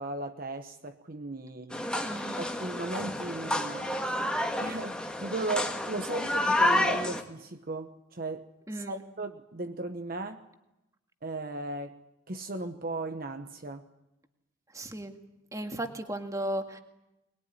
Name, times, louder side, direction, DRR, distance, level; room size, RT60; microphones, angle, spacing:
voice 1, 0.0-1.9 2.4-4.0 4.6-10.4 11.2-12.0 12.3-13.9, right 2 dB, 45° right, 7 dB, 1.1 m, -36 dB
sound 1, 1.7-7.2, left 1 dB, 5° left, 1.7 m, -29 dB
voice 2, 2.0-2.5 8.7-9.0 14.7-15.2 15.5-16.8, right 1 dB, 15° right, 5 dB, 2.0 m, -35 dB
24.0 x 21.0 x 10.0 m, 0.94 s
head